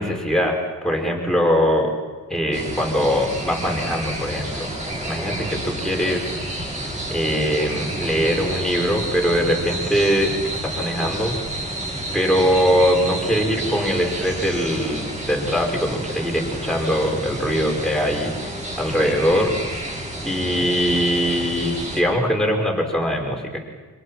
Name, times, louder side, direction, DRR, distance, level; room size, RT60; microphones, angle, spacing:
voice 1, 0.0-1.9 2.3-4.7 5.0-6.2 7.1-11.7 12.1-19.5 20.2-23.6, equal, ahead, 0 dB, 5.7 m, -22 dB
sound 1, 2.5-22.0, right 1 dB, 20° right, 7.5 m, -30 dB
29.0 x 27.0 x 6.1 m, 1.4 s
cardioid pair, 140°, 34 cm